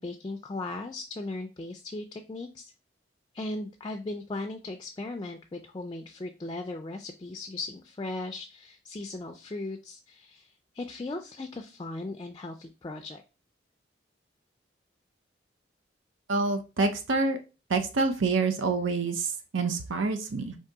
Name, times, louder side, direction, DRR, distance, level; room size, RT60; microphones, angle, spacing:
voice 1, 0.0-2.7 3.3-13.2, left 2 dB, 25° left, 4 dB, 0.3 m, -37 dB
voice 2, 16.3-17.4 17.7-20.6, right 3 dB, 90° right, 7 dB, 0.6 m, -27 dB
3.7 x 2.7 x 4.6 m, 0.30 s
head